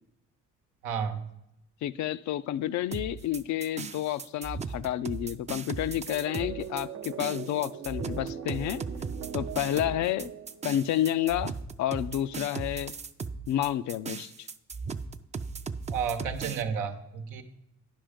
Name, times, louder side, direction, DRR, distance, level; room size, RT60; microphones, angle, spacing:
voice 1, 0.8-1.3 15.9-17.4, right 6 dB, 90° right, 6 dB, 0.9 m, -32 dB
voice 2, 1.8-6.9 7.2-8.8 9.3-10.3 10.6-12.9 13.5-14.5, left 12 dB, 70° left, 15 dB, 0.4 m, -30 dB
sound 1, 2.9-16.6, right 5 dB, 25° right, 0.4 m, -37 dB
sound 2, 6.1-11.2, right 8 dB, 65° right, 0.7 m, -41 dB
10.5 x 5.4 x 5.0 m, 0.84 s
cardioid pair, 90°, 30 cm